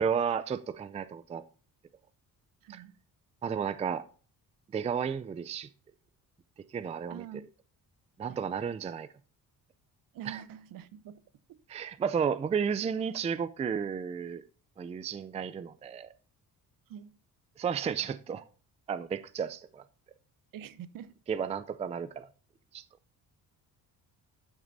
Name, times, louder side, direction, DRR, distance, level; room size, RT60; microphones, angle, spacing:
voice 1, 0.0-1.4 3.4-4.1 4.7-5.7 6.7-7.2 8.2-9.1 10.3-10.4 11.7-14.4 14.8-16.1 17.6-18.4 18.9-19.8 21.3-22.3 22.7-22.8, right 7 dB, 20° right, 0.4 m, -32 dB
voice 2, 2.6-3.0 7.1-7.4 8.3-8.5 10.1-11.2 11.5-11.6 16.9-17.1 20.5-21.2, right 9 dB, 65° right, 0.9 m, -45 dB
12.0 x 6.1 x 4.0 m
cardioid pair, 160°, 35 cm